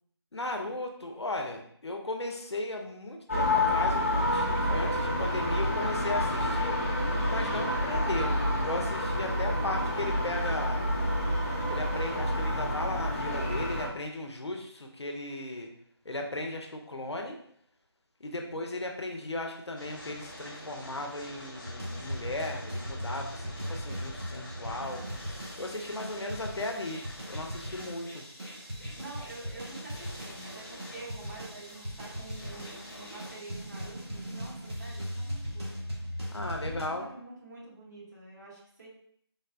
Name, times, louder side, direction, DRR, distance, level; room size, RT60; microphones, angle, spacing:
voice 1, 0.3-6.9 7.3-10.8 11.7-15.7 16.0-17.4 18.2-25.1 25.6-28.3 36.3-37.1, left 2 dB, 75° left, 3 dB, 0.6 m, -36 dB
sound 1, 3.3-13.9, left 1 dB, 30° left, 0.6 m, -28 dB
voice 2, 9.4-10.1 25.9-26.7 28.9-35.9 36.6-38.9, right 2 dB, 40° right, -5 dB, 1.2 m, -47 dB
sound 2, 19.8-33.4, left 1 dB, 50° left, 0.9 m, -47 dB
sound 3, 21.6-36.9, equal, 70° right, 1.4 m, -39 dB
4.0 x 2.1 x 2.4 m, 0.66 s
figure-of-eight pair, 165°, 14 cm